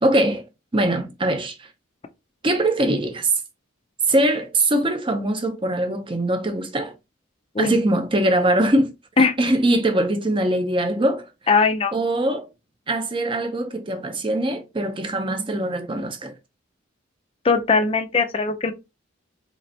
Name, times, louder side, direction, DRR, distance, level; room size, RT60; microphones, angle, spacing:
voice 1, 0.0-0.4 0.7-1.7 2.4-3.3 4.1-6.9 7.6-8.9 9.4-11.3 11.9-12.5 12.9-16.3, right 1 dB, 25° right, 0.6 m, -22 dB
voice 2, 11.5-11.9 17.4-18.7, left 4 dB, 25° left, 0.4 m, -19 dB
4.1 x 3.2 x 2.7 m
head